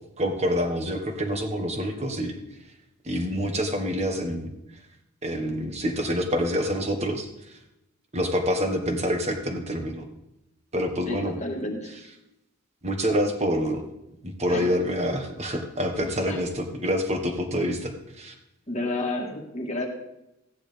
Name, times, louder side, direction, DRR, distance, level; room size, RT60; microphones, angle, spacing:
voice 1, 0.2-2.3 3.0-4.5 5.2-7.3 8.1-10.1 10.7-11.4 12.8-13.8 14.2-18.3, equal, 30° right, 4 dB, 1.4 m, -27 dB
voice 2, 11.1-12.0 14.5-14.7 16.3-16.4 18.7-19.9, left 2 dB, 30° left, 1 dB, 1.7 m, -31 dB
14.5 x 10.0 x 3.4 m, 0.88 s
head